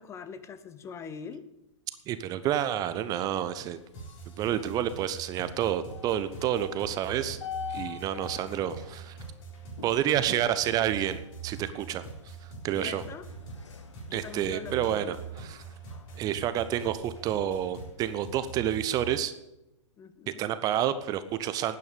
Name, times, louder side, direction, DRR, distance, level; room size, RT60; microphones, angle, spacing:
voice 1, 0.0-1.5 4.8-5.0 10.4-10.6 12.7-13.3 14.1-15.2 20.0-20.4, left 6 dB, 15° left, 13 dB, 0.8 m, -43 dB
voice 2, 2.1-3.8 4.4-7.4 7.7-9.2 9.8-12.3 12.6-13.0 14.1-15.6 16.2-19.3 20.4-21.8, right 11 dB, 25° right, 13 dB, 0.7 m, -29 dB
sound 1, 2.8-19.0, left 7 dB, 65° left, 1.6 m, -48 dB
sound 2, 3.9-19.2, right 4 dB, 40° left, 6.6 m, -44 dB
12.0 x 9.3 x 8.4 m, 0.94 s
figure-of-eight pair, 110°, 16 cm